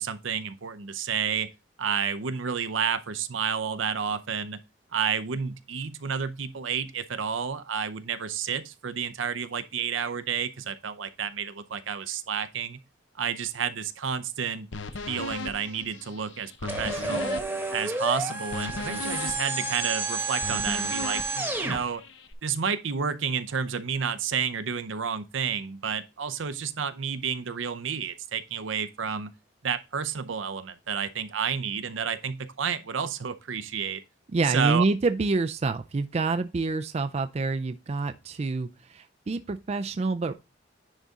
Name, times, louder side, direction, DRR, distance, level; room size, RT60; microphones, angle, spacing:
voice 1, 0.0-1.5 1.8-4.6 4.9-12.8 13.2-14.7 15.1-17.4 17.7-22.0 22.4-29.3 29.6-34.0 34.5-34.8, right 6 dB, 75° right, 0.6 m, -30 dB
sound 1, 14.7-22.3, left 3 dB, 70° left, 0.8 m, -38 dB
sound 2, 16.7-21.8, right 3 dB, 10° right, 1.1 m, -30 dB
voice 2, 34.3-40.3, right 3 dB, 35° right, 0.4 m, -27 dB
10.0 x 4.0 x 3.6 m
head